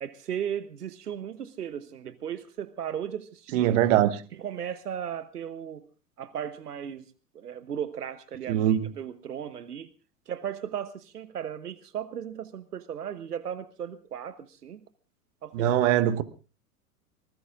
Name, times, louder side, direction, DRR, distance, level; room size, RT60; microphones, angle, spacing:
voice 1, 0.0-3.7 4.4-5.9 6.2-9.9 10.3-14.8 15.4-15.8, right 9 dB, 90° right, 1.0 m, -36 dB
voice 2, 3.5-4.2 8.5-8.9 15.5-16.2, right 11 dB, 55° right, 1.5 m, -22 dB
24.5 x 20.0 x 2.5 m
hypercardioid pair, 105°, 46 cm